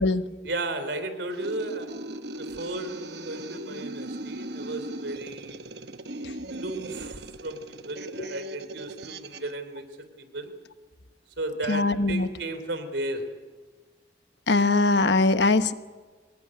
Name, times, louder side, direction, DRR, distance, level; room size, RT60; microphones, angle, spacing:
voice 1, 0.4-1.9 2.2-5.6 6.5-7.6 7.8-10.5 11.4-13.2, right 2 dB, 80° right, 10 dB, 3.2 m, -34 dB
sound 1, 1.3-9.5, right 1 dB, 65° right, 1.1 m, -38 dB
voice 2, 11.7-12.3 14.5-15.7, left 3 dB, 75° left, 11 dB, 1.1 m, -21 dB
24.0 x 19.0 x 9.7 m, 1.4 s
head